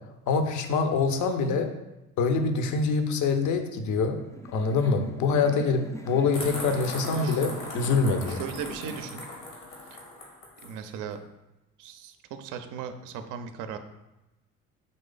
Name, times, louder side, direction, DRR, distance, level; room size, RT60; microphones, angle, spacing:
voice 1, 0.3-1.7 2.2-4.2 4.5-8.4, left 4 dB, 45° left, 6 dB, 0.7 m, -25 dB
sound 1, 4.1-9.3, left 1 dB, 10° left, 0.3 m, -43 dB
sound 2, 6.3-10.7, left 2 dB, 70° left, 1.3 m, -39 dB
voice 2, 7.1-7.4 8.3-9.2 9.9-10.0 10.6-11.2 11.8-13.8, right 7 dB, 50° right, 8 dB, 0.5 m, -37 dB
4.0 x 3.1 x 3.8 m, 0.99 s
figure-of-eight pair, 50°, 43 cm